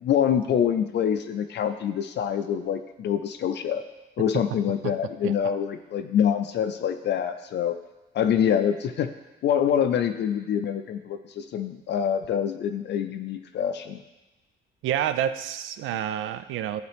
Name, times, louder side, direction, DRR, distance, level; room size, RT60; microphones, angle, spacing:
voice 1, 0.0-3.8 4.2-7.8 8.1-9.1 9.4-14.0, left 8 dB, 60° left, 8 dB, 0.4 m, -25 dB
voice 2, 14.8-16.8, right 10 dB, 85° right, 12 dB, 0.4 m, -28 dB
10.5 x 4.0 x 3.4 m, 1.1 s
cardioid pair, 90°, 20 cm